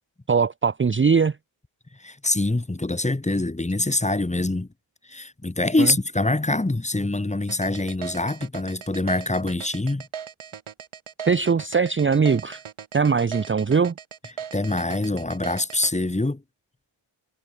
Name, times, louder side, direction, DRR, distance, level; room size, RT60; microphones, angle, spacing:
voice 1, 0.3-1.3 5.8-5.9 11.3-12.6 12.9-13.9, right 5 dB, 25° right, 0.7 m, -20 dB
voice 2, 2.0-4.7 5.1-10.0 14.5-16.4, left 2 dB, 15° left, 1.9 m, -24 dB
sound 1, 7.5-15.9, right 8 dB, 85° right, 3.8 m, -38 dB
wide cardioid pair, 90°, 48 cm